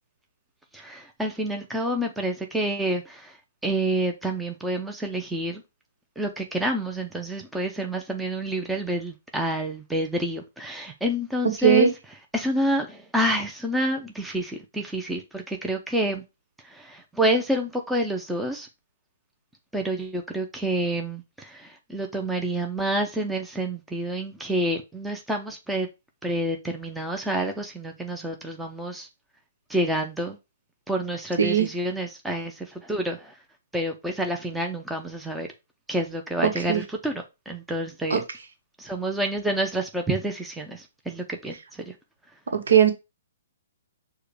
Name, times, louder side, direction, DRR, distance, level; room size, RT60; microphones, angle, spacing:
voice 1, 0.7-3.4 3.6-5.6 6.2-11.9 12.3-16.2 16.6-18.7 19.7-25.9 26.2-29.1 29.7-30.4 30.9-33.4 33.7-35.5 35.9-38.2 38.8-41.9, right 1 dB, 5° right, 0.5 m, -28 dB
voice 2, 42.5-42.9, right 8 dB, 80° right, 1.0 m, -18 dB
4.7 x 2.2 x 4.7 m
hypercardioid pair, 140°, 0 cm